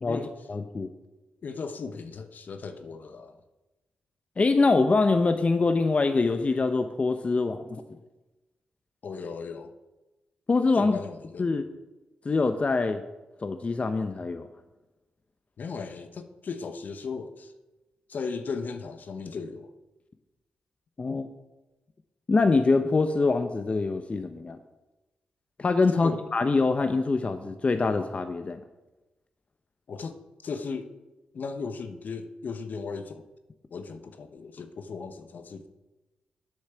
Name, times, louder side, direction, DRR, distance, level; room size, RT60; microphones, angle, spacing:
voice 1, 0.5-0.9 4.4-7.6 7.9-8.0 10.5-11.0 11.4-11.7 12.2-13.0 13.4-14.5 21.0-21.3 22.3-24.6 25.6-28.6, left 3 dB, 40° left, 8 dB, 0.8 m, -24 dB
voice 2, 1.4-3.4 9.0-9.7 10.7-11.6 15.6-17.5 18.1-19.7 25.9-26.2 29.9-30.2 30.4-30.9 31.3-33.3 33.7-35.7, left 5 dB, 65° left, 8 dB, 1.0 m, -36 dB
8.3 x 6.4 x 6.9 m, 1.1 s
supercardioid pair, 50°, 3 cm